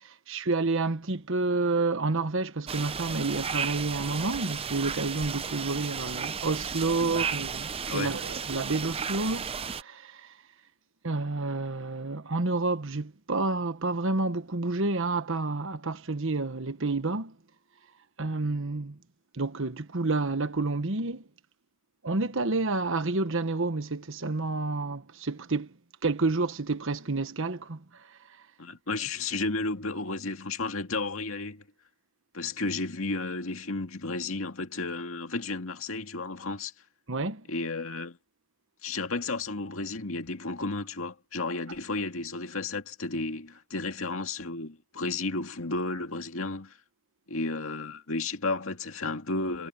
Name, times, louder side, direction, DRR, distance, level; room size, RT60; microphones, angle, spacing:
voice 1, 0.0-10.3 11.0-17.3 18.2-19.0 19.3-21.2 22.0-25.7 26.0-27.8 37.1-37.5, right 3 dB, 60° right, 1.2 m, -29 dB
sound 1, 2.7-9.8, right 6 dB, 25° right, 0.6 m, -34 dB
voice 2, 28.6-31.6 32.3-36.7 37.5-38.2 38.8-46.8 47.3-49.7, left 3 dB, 65° left, 2.3 m, -33 dB
head